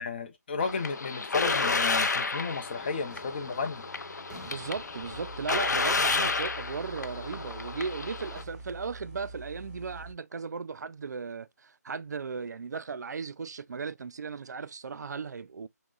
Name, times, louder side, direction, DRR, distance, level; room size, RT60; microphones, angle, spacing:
voice 1, 0.0-3.9, left 5 dB, 35° left, 0.5 m, -33 dB
sound 1, 0.6-8.4, left 4 dB, 90° left, 0.5 m, -31 dB
sound 2, 2.5-7.8 8.3-9.0, right 2 dB, 10° right, 0.6 m, -53 dB
voice 2, 4.5-15.7, right 5 dB, 80° right, 0.4 m, -36 dB
sound 3, 5.1-10.1, right 3 dB, 35° right, 1.5 m, -45 dB
6.0 x 2.0 x 2.3 m
figure-of-eight pair, 165°, 9 cm